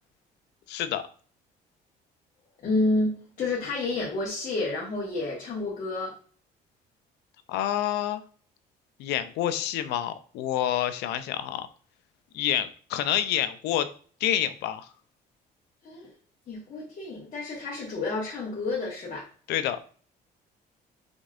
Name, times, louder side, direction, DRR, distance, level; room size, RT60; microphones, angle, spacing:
voice 1, 0.7-1.0 7.5-8.2 9.0-11.7 12.3-13.9 14.2-14.9 19.5-19.8, left 11 dB, 85° left, 11 dB, 0.5 m, -28 dB
voice 2, 2.6-6.1 15.8-16.1 16.5-19.3, left 2 dB, 45° left, -6 dB, 1.4 m, -29 dB
5.2 x 3.6 x 2.5 m, 0.43 s
cardioid pair, 110°, 17 cm